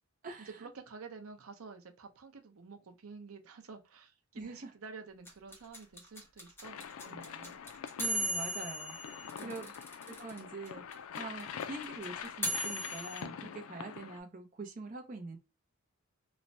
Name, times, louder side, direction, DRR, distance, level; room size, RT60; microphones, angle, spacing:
voice 1, 0.4-6.8 7.1-7.6 9.4-9.7, right 4 dB, 85° right, 0.6 m, -49 dB
sound 1, 5.3-10.4 10.7-10.8 10.9-13.2, right 1 dB, 10° left, 0.8 m, -37 dB
sound 2, 6.6-14.2, left 7 dB, 85° left, 0.4 m, -45 dB
voice 2, 8.0-9.7 10.1-15.4, right 3 dB, 40° right, 0.5 m, -44 dB
3.1 x 2.1 x 2.5 m
head